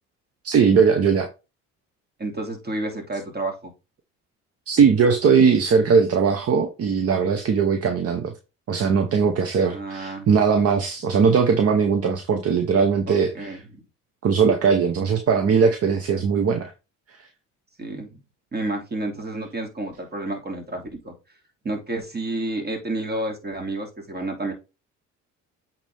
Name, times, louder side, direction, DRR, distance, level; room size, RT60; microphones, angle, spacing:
voice 1, 0.4-1.3 4.7-8.3 8.7-13.6 14.2-16.7, right 6 dB, 50° right, 1.2 m, -19 dB
voice 2, 2.2-3.7 9.7-10.3 13.1-13.8 17.8-18.2 18.5-21.1 21.6-24.5, right 2 dB, 30° right, 2.9 m, -30 dB
8.3 x 4.5 x 3.6 m
cardioid pair, 90°, 31 cm